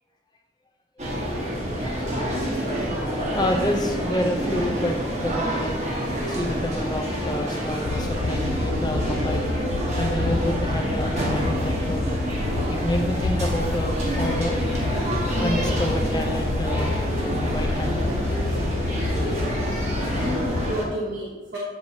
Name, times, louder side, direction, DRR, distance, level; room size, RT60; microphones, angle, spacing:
sound 1, 1.0-20.8, equal, 40° right, 1.2 m, -27 dB
voice 1, 3.3-5.8 6.3-9.6 10.0-12.2 12.7-14.6 15.4-17.0 17.3-18.0, left 1 dB, 25° left, 2 dB, 0.6 m, -28 dB
sound 2, 7.8-20.7, left 3 dB, 65° left, 0.4 m, -29 dB
voice 2, 19.4-21.6, equal, 65° right, -6 dB, 1.1 m, -32 dB
7.9 x 4.4 x 2.8 m, 1.3 s
head